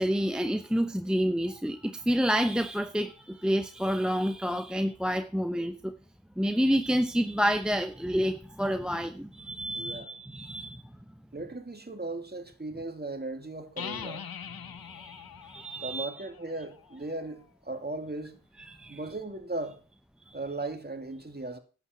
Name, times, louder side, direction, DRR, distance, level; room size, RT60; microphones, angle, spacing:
voice 1, 0.0-5.9 6.4-10.8 14.7-16.2 18.7-19.0 20.3-20.4, equal, ahead, 0.9 m, -29 dB
voice 2, 9.7-10.1 11.3-14.3 15.7-18.4 18.9-19.8 20.3-21.6, right 2 dB, 30° right, 2.4 m, -37 dB
sound 1, 13.8-17.4, left 8 dB, 90° left, 0.9 m, -43 dB
11.0 x 8.7 x 6.0 m
cardioid pair, 50°, 35 cm